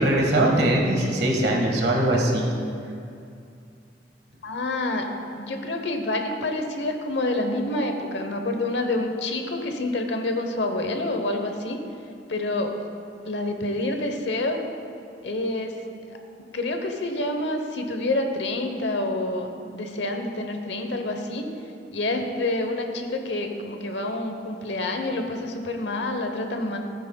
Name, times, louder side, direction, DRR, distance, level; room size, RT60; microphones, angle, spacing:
voice 1, 0.0-2.5, right 1 dB, 60° right, -1 dB, 1.6 m, -21 dB
voice 2, 4.4-5.1 5.4-11.8 12.3-12.7 13.3-14.6 15.2-15.8 16.1-16.2 16.5-21.4 21.9-26.8, left 2 dB, 75° left, 5 dB, 0.9 m, -27 dB
15.0 x 9.3 x 2.3 m, 2.4 s
head